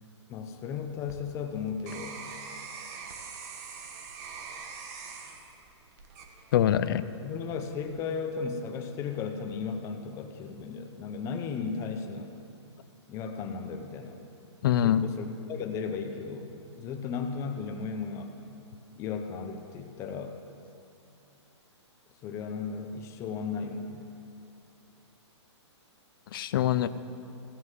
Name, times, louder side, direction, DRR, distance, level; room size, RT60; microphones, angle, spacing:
voice 1, 0.3-2.2 6.8-7.0 7.2-12.4 13.1-14.2 14.8-18.4 19.0-20.4 22.2-24.1, left 5 dB, 20° left, 6 dB, 0.8 m, -35 dB
sound 1, 0.7-6.9 7.4-7.9, right 5 dB, 35° right, 1.2 m, -44 dB
voice 2, 6.5-7.0 14.6-15.0 26.3-26.9, left 11 dB, 50° left, 14 dB, 0.5 m, -24 dB
15.5 x 6.3 x 7.5 m, 2.6 s
hypercardioid pair, 160°, 15 cm